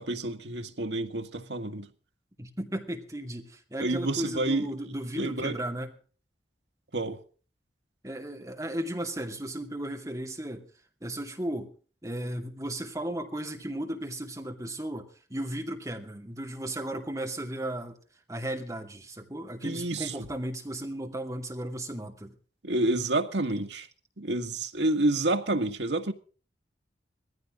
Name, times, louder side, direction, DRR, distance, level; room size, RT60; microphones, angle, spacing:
voice 1, 0.0-1.9 3.8-4.7 5.2-5.6 6.9-7.2 19.6-20.1 22.6-23.9 24.2-26.1, right 2 dB, 80° right, 1.8 m, -29 dB
voice 2, 2.4-5.9 8.0-10.7 11.0-11.7 12.0-18.0 18.3-22.3, right 1 dB, 20° right, 2.4 m, -35 dB
20.0 x 15.0 x 3.8 m
head